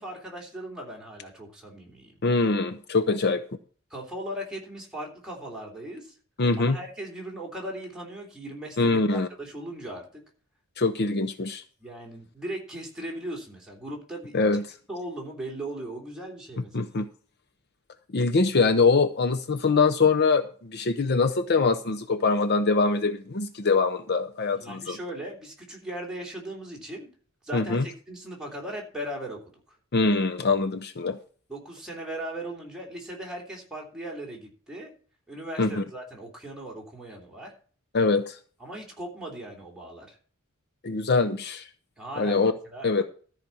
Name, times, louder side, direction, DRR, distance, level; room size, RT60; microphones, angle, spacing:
voice 1, 0.0-2.1 3.9-6.1 6.7-10.2 11.8-14.3 14.9-16.8 24.5-27.1 27.4-29.4 29.7-29.8 31.5-34.9 35.3-37.5 38.6-40.2 42.0-43.0, right 1 dB, 5° right, -2 dB, 3.3 m, -38 dB
voice 2, 2.2-3.4 6.4-6.8 8.8-9.3 10.8-11.6 14.3-14.6 16.7-17.1 18.1-25.0 27.5-27.8 29.9-31.2 35.6-35.8 37.9-38.4 40.8-41.7 42.2-42.5 42.8-43.0, left 4 dB, 50° left, 9 dB, 0.7 m, -23 dB
13.5 x 5.0 x 7.1 m, 0.43 s
head